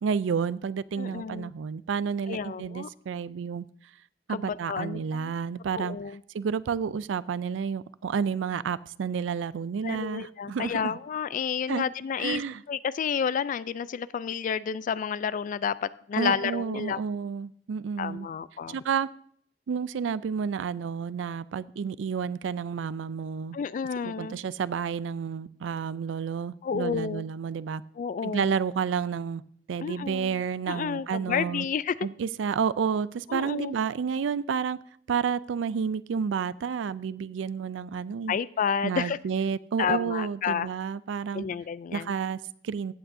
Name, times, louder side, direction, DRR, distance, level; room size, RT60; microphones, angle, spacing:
voice 1, 0.0-3.7 4.3-6.0 6.3-11.0 11.7-11.8 12.2-12.6 16.2-18.3 18.7-19.1 19.7-23.6 24.0-27.8 28.2-29.4 29.7-31.7 32.0-34.8 35.1-38.4 38.8-41.5 41.9-42.9, right 6 dB, 85° right, 18 dB, 0.4 m, -30 dB
voice 2, 1.0-1.5 2.3-2.9 4.3-5.3 5.7-6.2 9.8-12.4 12.7-17.0 18.0-18.8 23.5-24.4 26.6-27.2 28.0-28.5 29.8-32.1 33.3-33.7 38.3-39.2 39.8-40.7 41.3-42.1, left 7 dB, 45° left, 17 dB, 0.3 m, -30 dB
15.5 x 8.6 x 2.6 m, 0.64 s
head